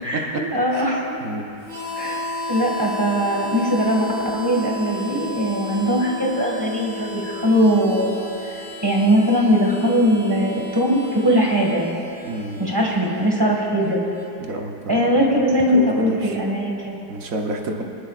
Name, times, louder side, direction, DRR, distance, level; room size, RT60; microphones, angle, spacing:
voice 1, 0.0-1.1 2.0-2.2 2.5-8.1 8.4-11.9 12.6-14.0 14.9-17.0, equal, 15° right, -2 dB, 1.7 m, -20 dB
voice 2, 0.7-1.5 12.2-12.6 14.4-15.4 15.7-16.4 17.1-17.8, right 2 dB, 55° right, 2 dB, 1.2 m, -30 dB
Harmonica, 1.6-14.3, left 1 dB, 80° right, 4.2 m, -33 dB
23.5 x 11.5 x 2.4 m, 2.8 s
omnidirectional pair, 2.0 m